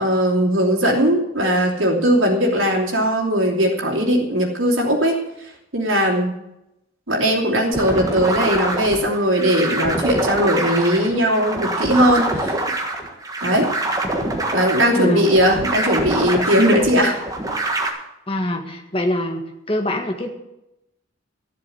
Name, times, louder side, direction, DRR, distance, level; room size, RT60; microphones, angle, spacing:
voice 1, 0.0-6.3 7.1-12.6 13.4-13.7 14.5-17.2, equal, 75° right, -2 dB, 2.8 m, -19 dB
sound 1, 7.7-17.9, right 2 dB, 15° right, 1.5 m, -25 dB
voice 2, 15.0-15.3 18.3-19.4 19.7-20.3, left 1 dB, 25° left, 5 dB, 1.6 m, -23 dB
13.5 x 7.7 x 8.6 m, 0.88 s
head